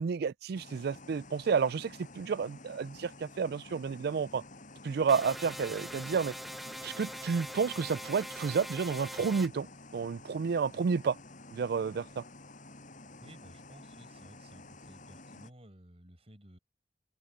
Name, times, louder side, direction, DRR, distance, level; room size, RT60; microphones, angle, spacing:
voice 1, 0.0-4.4 4.8-6.3 6.8-9.7 9.9-11.2 11.5-12.2, right 5 dB, 65° right, 0.4 m, -31 dB
sound 1, 0.5-15.5, left 2 dB, 50° left, 6.9 m, -51 dB
sound 2, 5.1-9.5, equal, ahead, 0.8 m, -42 dB
voice 2, 13.2-16.6, right 1 dB, 35° right, 5.2 m, -55 dB
head